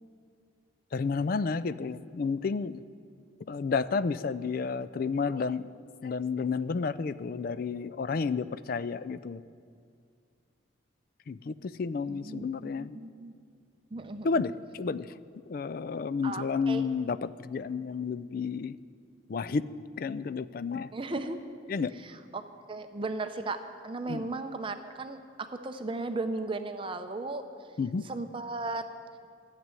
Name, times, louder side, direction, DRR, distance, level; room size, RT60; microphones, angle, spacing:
voice 1, 0.9-2.8 3.5-5.7 6.0-9.4 11.3-13.0 14.2-15.1 15.5-18.8 19.3-19.7 20.0-20.9 21.7-21.9 24.1-24.3 27.8-28.1, left 5 dB, 45° left, 15 dB, 0.3 m, -31 dB
voice 2, 12.1-13.3 13.9-14.3 16.2-16.8 20.9-21.4 22.0-27.4 28.0-28.8, right 3 dB, 25° right, 8 dB, 0.5 m, -36 dB
12.5 x 7.5 x 9.8 m, 2.2 s
head